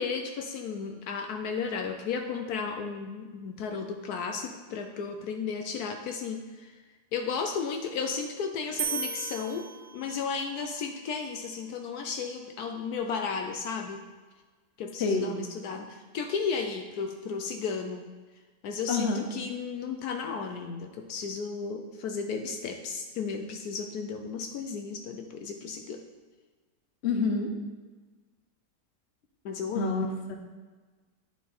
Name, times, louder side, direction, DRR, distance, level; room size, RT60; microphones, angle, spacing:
voice 1, 0.0-6.7 7.1-9.7 9.9-14.0 14.8-18.0 18.6-26.0 29.4-30.0, left 5 dB, 70° left, 5 dB, 1.1 m, -34 dB
sound 1, 8.8-10.4, right 6 dB, 55° right, 0.7 m, -35 dB
voice 2, 15.0-15.4 18.9-19.2 27.0-27.5 29.7-30.4, left 3 dB, 50° left, 4 dB, 0.9 m, -28 dB
9.1 x 4.6 x 4.2 m, 1.3 s
omnidirectional pair, 1.8 m